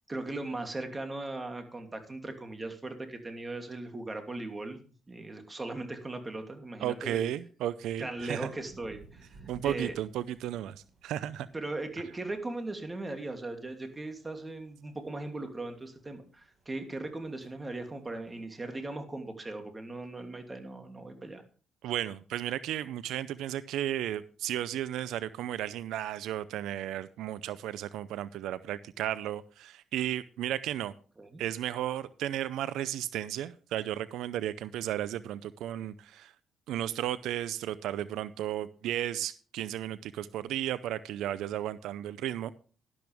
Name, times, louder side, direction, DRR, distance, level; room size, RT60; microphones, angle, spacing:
voice 1, 0.1-4.8 5.1-7.3 8.0-9.9 11.5-21.4 31.2-31.4, right 2 dB, 20° right, 5 dB, 2.8 m, -38 dB
voice 2, 6.8-8.5 9.5-11.5 21.8-30.9 31.4-36.3 36.7-42.5, right 12 dB, 85° right, 16 dB, 0.5 m, -34 dB
sound 1, 8.1-18.4, right 4 dB, 45° right, 7.8 m, -57 dB
12.0 x 12.0 x 3.5 m, 0.39 s
cardioid pair, 90°, 0 cm